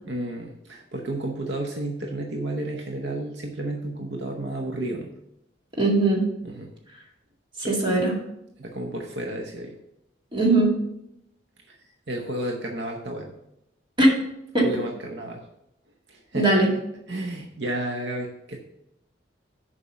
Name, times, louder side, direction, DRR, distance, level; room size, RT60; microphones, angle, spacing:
voice 1, 0.0-5.1 6.4-6.7 7.6-7.8 8.6-9.7 11.7-11.8 12.1-13.3 14.6-15.4 16.1-16.7 17.1-18.6, right 1 dB, 65° right, 2 dB, 0.9 m, -32 dB
voice 2, 5.8-6.3 7.6-8.2 10.3-10.8 14.0-14.1 14.5-14.7 16.3-16.7, right 2 dB, 25° right, -2 dB, 2.0 m, -19 dB
6.9 x 5.3 x 6.3 m, 0.83 s
head